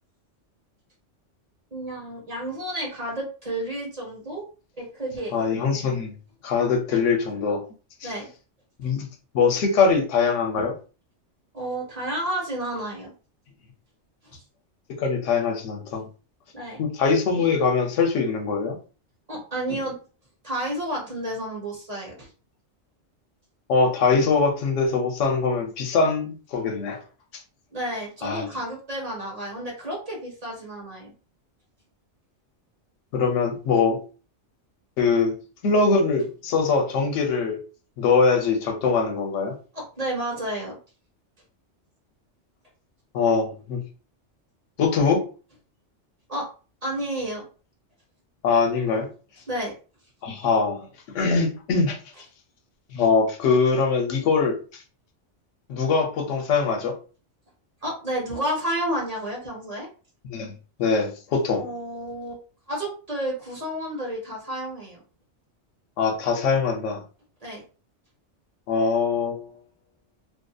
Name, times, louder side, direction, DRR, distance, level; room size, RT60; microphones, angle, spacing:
voice 1, 1.7-4.4 4.8-5.5 6.9-7.0 8.0-8.3 11.5-13.1 14.2-14.4 16.5-16.8 19.3-20.0 20.4-22.3 27.7-31.1 39.7-40.8 46.3-46.5 46.8-47.5 49.5-49.7 57.8-59.9 61.6-62.4 62.7-65.0 67.4-67.6, right 1 dB, 35° right, 0.8 m, -31 dB
voice 2, 5.3-6.1 6.4-7.6 8.0-8.1 8.8-9.1 9.3-10.7 15.0-16.0 16.8-18.8 23.7-27.0 28.2-28.5 33.1-34.0 35.0-35.3 35.6-37.6 38.0-39.6 43.1-43.8 44.8-45.3 48.4-49.1 50.2-50.9 51.1-52.0 52.9-54.8 55.7-57.0 60.3-60.5 60.8-61.6 66.0-67.0 68.7-69.5, left 4 dB, 85° left, 1.0 m, -22 dB
2.6 x 2.4 x 2.3 m
omnidirectional pair, 1.2 m